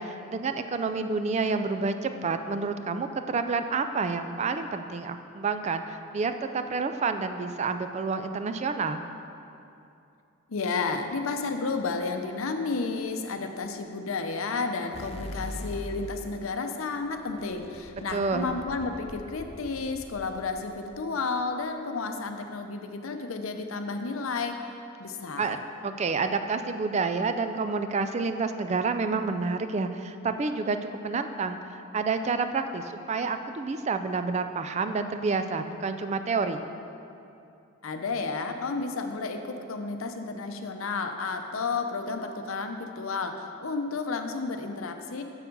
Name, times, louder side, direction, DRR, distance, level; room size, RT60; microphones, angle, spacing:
voice 1, 0.0-9.0 18.1-18.6 25.4-36.6, right 4 dB, 35° right, 9 dB, 0.3 m, -29 dB
voice 2, 10.5-24.7 25.0-25.5 37.8-45.2, left 4 dB, 80° left, 6 dB, 0.6 m, -32 dB
sound 1, 14.9-16.3 17.0-21.2, left 1 dB, 30° left, 0.5 m, -41 dB
7.2 x 6.9 x 5.3 m, 2.7 s
head